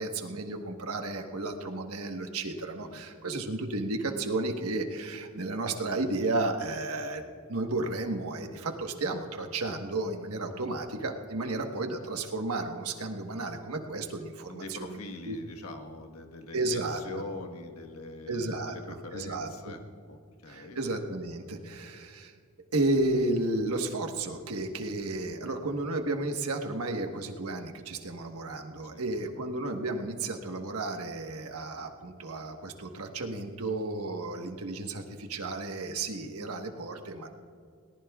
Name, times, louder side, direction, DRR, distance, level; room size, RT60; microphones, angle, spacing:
voice 1, 0.0-7.2 7.5-15.4 16.5-17.2 18.3-19.7 20.5-22.3 22.7-37.3, right 2 dB, 80° right, 4 dB, 1.3 m, -33 dB
voice 2, 14.5-19.8 20.1-20.8 28.9-29.0, left 2 dB, 80° left, 4 dB, 1.4 m, -43 dB
21.5 x 18.5 x 2.4 m, 2.3 s
head